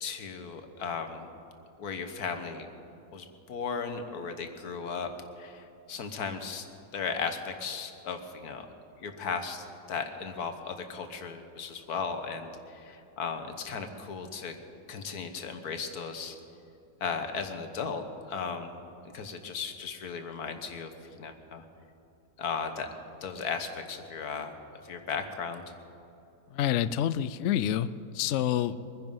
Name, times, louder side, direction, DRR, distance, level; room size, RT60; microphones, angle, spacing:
voice 1, 0.0-1.3 1.8-2.7 3.1-5.1 5.4-6.7 6.9-8.7 9.0-14.6 14.9-16.4 17.0-18.8 19.1-21.6 22.4-22.9 23.2-24.6 24.8-25.6, left 5 dB, 65° left, 6 dB, 1.6 m, -36 dB
voice 2, 26.5-28.9, left 10 dB, 85° left, 14 dB, 0.6 m, -28 dB
23.0 x 10.5 x 5.5 m, 2.7 s
omnidirectional pair, 1.8 m